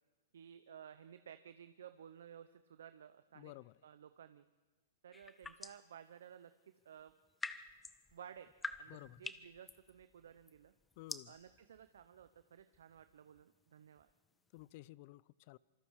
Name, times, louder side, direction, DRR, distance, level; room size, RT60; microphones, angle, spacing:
voice 1, 0.3-3.5 3.8-4.4 5.0-7.1 8.1-8.5 8.8-10.7 11.3-14.1, right 8 dB, 75° right, 10 dB, 0.9 m, -56 dB
voice 2, 3.4-3.7 8.9-9.2 11.0-11.3 14.5-15.6, left 19 dB, 50° left, 22 dB, 0.6 m, -53 dB
sound 1, 5.1-5.9 7.0-14.7, left 3 dB, 10° left, 0.9 m, -49 dB
26.5 x 25.0 x 4.9 m, 1.3 s
hypercardioid pair, 120°, 0 cm